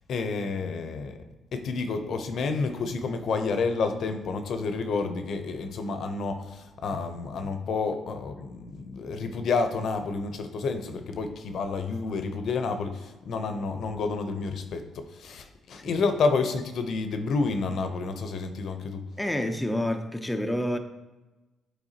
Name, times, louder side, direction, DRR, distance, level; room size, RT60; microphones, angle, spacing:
voice 1, 0.1-1.2 1.5-19.0, left 4 dB, 65° left, 0.7 m, -29 dB
voice 2, 19.2-20.8, left 1 dB, 10° left, 0.5 m, -28 dB
8.0 x 4.4 x 2.9 m
cardioid pair, 90°, 0 cm